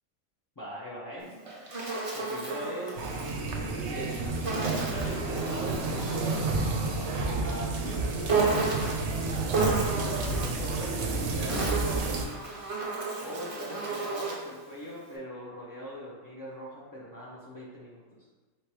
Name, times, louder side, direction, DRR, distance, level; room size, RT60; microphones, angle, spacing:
voice 1, 0.6-1.3 2.1-3.0 3.6-4.2 4.7-6.5 7.4-8.8 9.9-12.0 13.2-18.0, equal, 30° left, -7 dB, 0.3 m, -41 dB
Insect, 1.2-3.4 4.4-6.5 8.3-9.1 9.5-10.7 11.3-14.5, right 3 dB, 45° right, 0.4 m, -32 dB
sound 1, 3.0-12.2, right 3 dB, 60° right, 0.8 m, -30 dB
4.4 x 3.4 x 3.1 m, 1.3 s
omnidirectional pair, 1.5 m